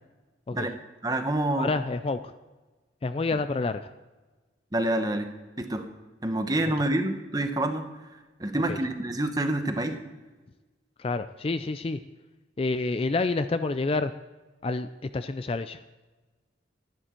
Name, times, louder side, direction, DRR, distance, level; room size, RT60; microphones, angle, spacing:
voice 1, 1.0-1.7 4.7-5.3 5.6-5.9 6.2-7.9 8.4-10.0, right 1 dB, 20° right, 7 dB, 0.9 m, -27 dB
voice 2, 1.6-2.3 3.0-3.9 8.7-8.8 11.0-12.0 12.6-14.1 14.6-14.9 15.1-15.8, left 3 dB, 30° left, 11 dB, 0.3 m, -28 dB
11.5 x 11.0 x 4.4 m, 1.2 s
head